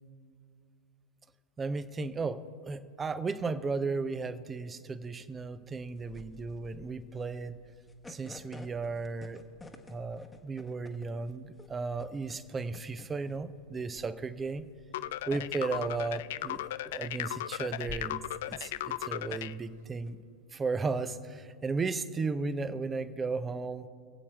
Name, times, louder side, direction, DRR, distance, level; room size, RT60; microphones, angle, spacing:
voice 1, 1.6-7.6 8.1-9.4 9.9-14.7 15.3-20.2 20.5-23.9, right 4 dB, 15° right, 14 dB, 0.6 m, -35 dB
sound 1, 5.4-20.1, left 2 dB, 10° left, 1.1 m, -51 dB
sound 2, 14.9-19.5, left 14 dB, 55° left, 0.3 m, -36 dB
25.0 x 8.5 x 3.4 m, 2.4 s
figure-of-eight pair, 90°, 0 cm